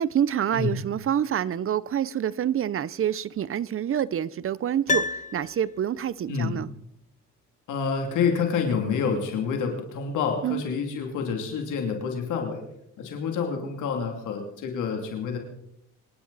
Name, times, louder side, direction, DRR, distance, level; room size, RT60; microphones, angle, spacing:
voice 1, 0.0-6.7 10.4-10.6, right 10 dB, 45° right, 0.7 m, -27 dB
Piano, 4.9-6.1 6.4-6.5, left 3 dB, 25° left, 0.7 m, -29 dB
voice 2, 6.3-6.6 7.7-12.6 13.0-15.4, left 6 dB, 85° left, 2.8 m, -28 dB
25.0 x 12.0 x 4.1 m
cardioid pair, 90°, 30 cm